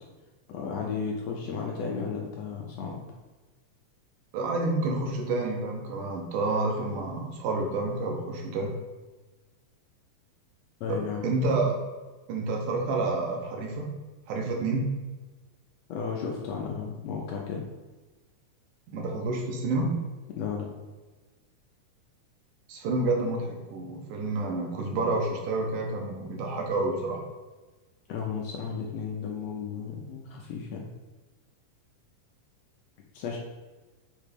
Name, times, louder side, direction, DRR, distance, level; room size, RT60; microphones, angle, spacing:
voice 1, 0.5-3.1 10.8-11.3 15.9-17.6 20.4-20.7 28.1-30.9 33.1-33.4, left 6 dB, 85° left, -1 dB, 1.4 m, -34 dB
voice 2, 4.3-8.7 10.9-11.8 12.3-13.9 14.3-14.8 18.9-19.9 22.7-27.2, right 2 dB, 75° right, 0 dB, 2.4 m, -29 dB
6.8 x 3.2 x 5.1 m, 1.2 s
omnidirectional pair, 3.9 m